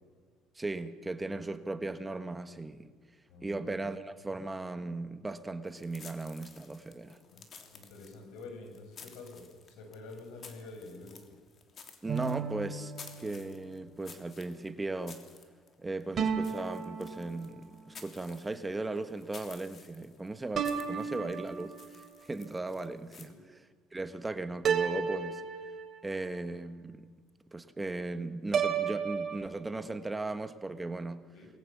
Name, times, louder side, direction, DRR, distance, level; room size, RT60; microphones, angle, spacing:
voice 1, 0.5-2.9 3.4-7.2 12.0-12.9 13.2-15.3 15.8-25.4 26.0-27.1 27.5-31.3, right 2 dB, 15° right, 1.4 m, -37 dB
voice 2, 3.3-3.9 7.0-7.4 7.7-11.2 23.2-23.4 31.3-31.5, left 3 dB, 80° left, 7.8 m, -48 dB
sound 1, 5.7-23.3, left 5 dB, 40° left, 3.3 m, -54 dB
sound 2, 12.1-13.7 16.2-17.8 20.5-22.1 24.6-26.2 28.5-29.4, right 6 dB, 40° right, 3.2 m, -33 dB
28.5 x 20.5 x 7.3 m
cardioid pair, 125°, 0 cm